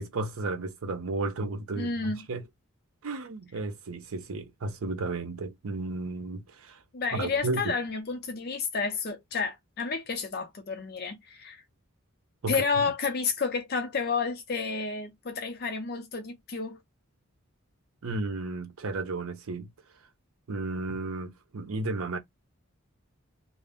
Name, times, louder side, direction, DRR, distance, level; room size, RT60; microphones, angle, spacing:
voice 1, 0.0-2.5 3.0-6.8 7.1-7.7 12.4-12.8 18.0-19.7 20.5-22.2, right 3 dB, 85° right, 0.6 m, -33 dB
voice 2, 1.8-2.2 6.9-11.6 12.5-16.8, left 4 dB, 45° left, 0.5 m, -31 dB
2.5 x 2.0 x 3.5 m
head